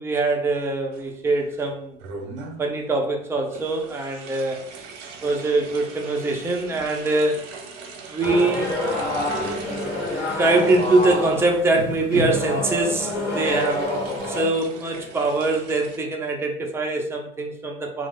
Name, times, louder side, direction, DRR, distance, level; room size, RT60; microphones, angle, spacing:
voice 1, 0.0-2.0 2.6-4.7 5.2-7.4 8.1-8.7 10.3-13.9 14.3-18.1, right 2 dB, 5° right, 1 dB, 0.4 m, -23 dB
sound 1, 0.9-1.6 2.0-2.7 3.5-16.0, right 4 dB, 50° right, 0.7 m, -41 dB
sound 2, 8.2-14.5, left 1 dB, 90° left, 1.0 m, -27 dB
2.6 x 2.1 x 3.5 m, 0.62 s
hypercardioid pair, 85°, 34 cm